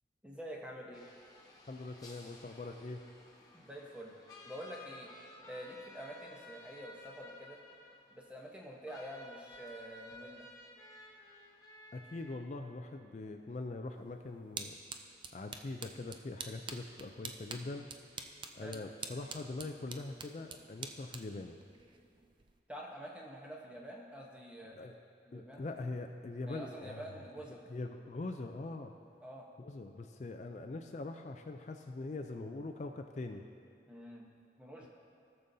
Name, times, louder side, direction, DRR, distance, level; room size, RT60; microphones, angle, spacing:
voice 1, 0.2-1.1 3.5-4.1 4.4-5.1 5.5-7.6 8.1-10.5 18.6-18.8 22.7-24.9 25.2-25.7 26.5-27.6 29.2-29.5 33.9-34.3 34.6-34.9, equal, 5° right, -1 dB, 0.9 m, -47 dB
sound 1, 0.9-12.4, left 2 dB, 20° left, 1.0 m, -55 dB
voice 2, 1.7-3.0 11.9-14.8 15.3-17.9 18.5-21.6 24.8-24.9 25.3-27.1 27.7-28.9 29.6-33.4, left 2 dB, 40° left, 5 dB, 0.4 m, -42 dB
sound 2, 13.9-22.6, right 5 dB, 25° right, 0.4 m, -48 dB
17.5 x 6.8 x 2.7 m, 2.4 s
head